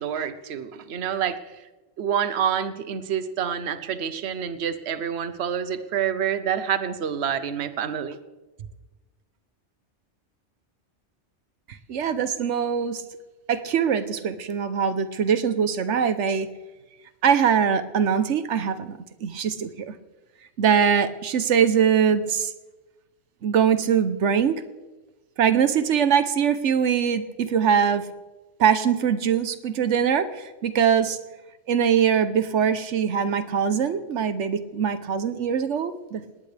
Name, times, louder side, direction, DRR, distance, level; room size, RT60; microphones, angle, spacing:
voice 1, 0.0-1.4 2.0-8.2, right 8 dB, 70° right, 12 dB, 1.1 m, -27 dB
voice 2, 11.9-13.0 13.5-16.5 17.2-20.0 20.6-22.5 23.4-24.6 25.4-28.1 28.6-31.2 31.7-36.2, right 7 dB, 85° right, 12 dB, 1.2 m, -22 dB
19.0 x 18.5 x 3.4 m, 1.1 s
omnidirectional pair, 1.2 m